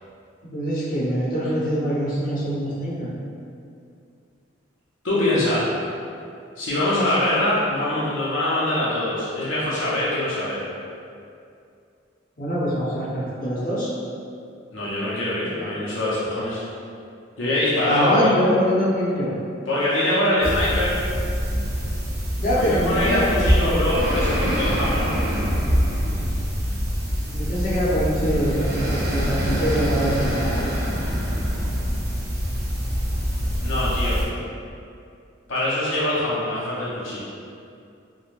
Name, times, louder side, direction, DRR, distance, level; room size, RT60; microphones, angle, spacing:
voice 1, 0.5-3.1 12.4-13.9 17.8-19.4 22.4-23.8 27.2-30.7, equal, 40° left, -10 dB, 0.7 m, -24 dB
voice 2, 5.0-5.7 6.6-10.6 14.7-16.6 17.4-18.3 19.7-21.0 22.5-25.1 33.6-34.2 35.5-37.2, left 1 dB, 75° left, -8 dB, 0.6 m, -23 dB
sound 1, 20.4-34.2, equal, 55° right, 0.6 m, -24 dB
3.1 x 2.1 x 2.5 m, 2.5 s
head